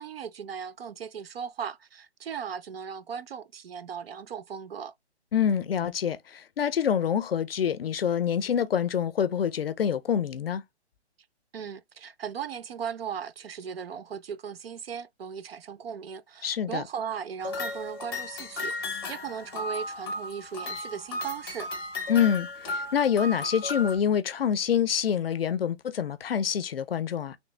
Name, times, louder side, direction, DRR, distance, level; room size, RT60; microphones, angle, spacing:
voice 1, 0.0-4.9 11.5-21.7, right 7 dB, 60° right, 0.5 m, -37 dB
voice 2, 5.3-10.6 16.4-16.8 22.1-27.4, left 8 dB, 60° left, 0.5 m, -26 dB
sound 1, 17.4-24.0, left 2 dB, 20° left, 0.7 m, -35 dB
3.1 x 2.6 x 3.1 m
hypercardioid pair, 165°, 34 cm